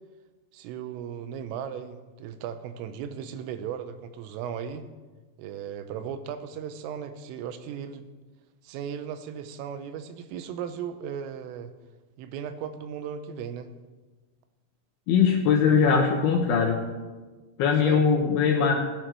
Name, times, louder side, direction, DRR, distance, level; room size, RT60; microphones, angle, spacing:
voice 1, 0.5-4.9 5.4-8.1 8.6-11.7 12.2-13.7 17.8-18.1, right 8 dB, 85° right, 10 dB, 3.4 m, -36 dB
voice 2, 15.1-16.8 17.6-18.7, left 6 dB, 75° left, 1 dB, 2.3 m, -21 dB
17.5 x 10.5 x 4.6 m, 1.3 s
omnidirectional pair, 5.8 m